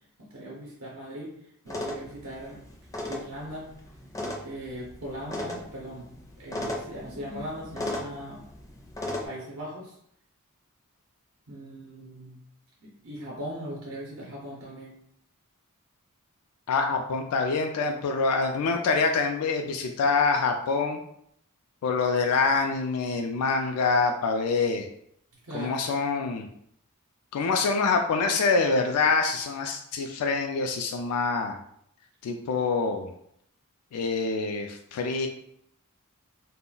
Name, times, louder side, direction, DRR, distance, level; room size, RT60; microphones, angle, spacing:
voice 1, 0.2-1.4 1.6-2.6 3.1-3.7 4.4-8.4 9.2-9.9 11.5-12.4 12.8-14.9 25.4-25.8, equal, 70° right, -3 dB, 0.6 m, -39 dB
sound 1, 1.7-9.3, left 1 dB, 15° left, 0.4 m, -37 dB
voice 2, 16.7-21.0 21.8-24.9 25.5-26.5 27.3-31.6 32.2-33.1 33.9-35.3, left 4 dB, 90° left, 5 dB, 0.3 m, -25 dB
2.2 x 2.0 x 3.7 m, 0.71 s
head